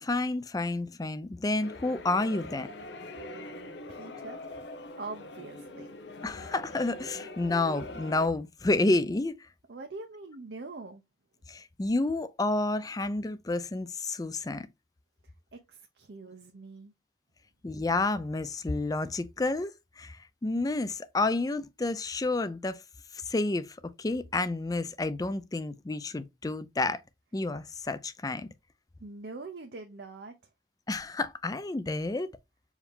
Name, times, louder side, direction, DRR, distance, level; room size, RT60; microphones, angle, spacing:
voice 1, 0.0-2.7 6.2-9.3 11.5-14.7 17.6-22.8 23.1-27.0 27.3-28.5 30.9-32.3, left 2 dB, 20° left, 0.4 m, -30 dB
sound 1, 1.6-8.3, left 1 dB, 80° left, 0.7 m, -43 dB
voice 2, 3.9-4.4 5.0-5.9 9.7-11.0 15.5-16.9 29.0-30.3, right 3 dB, 70° right, 0.6 m, -43 dB
4.8 x 2.7 x 3.5 m
head